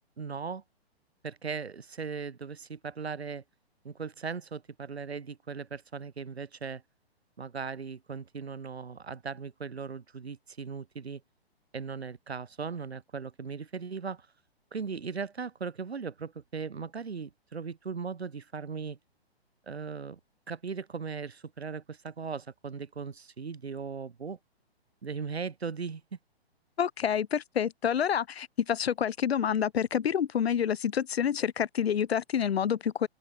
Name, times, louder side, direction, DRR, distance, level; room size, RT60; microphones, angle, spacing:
voice 1, 0.2-0.6 1.2-3.4 3.8-6.8 7.4-11.2 11.7-14.3 14.7-19.0 19.7-20.2 20.5-24.4 25.0-26.0, right 5 dB, 75° right, 2.5 m, -38 dB
voice 2, 26.8-33.1, left 8 dB, 70° left, 0.7 m, -28 dB
open air
figure-of-eight pair, 125°, 32 cm